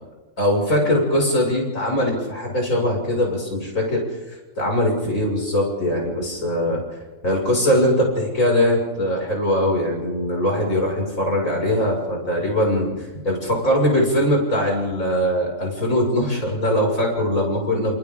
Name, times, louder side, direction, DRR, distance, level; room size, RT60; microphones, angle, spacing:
voice 1, 0.4-4.0 4.6-6.8 7.2-12.9 13.2-18.0, left 1 dB, 75° left, -1 dB, 6.7 m, -21 dB
29.0 x 28.5 x 3.8 m, 1.2 s
omnidirectional pair, 1.4 m